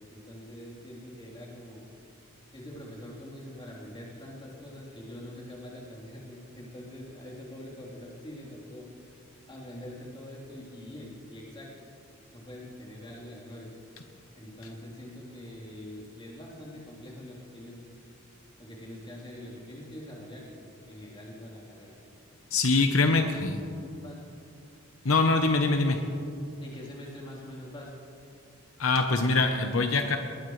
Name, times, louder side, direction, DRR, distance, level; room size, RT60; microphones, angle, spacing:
voice 1, 0.1-1.8 2.5-8.9 9.5-11.9 12.3-13.7 14.4-17.8 18.6-22.0 22.8-23.4 23.8-24.2 26.6-27.9, left 1 dB, 25° left, -5 dB, 3.7 m, -44 dB
voice 2, 22.5-23.6 25.0-26.0 28.8-30.2, left 3 dB, 70° left, 5 dB, 0.9 m, -23 dB
21.0 x 19.5 x 3.3 m, 2.5 s
head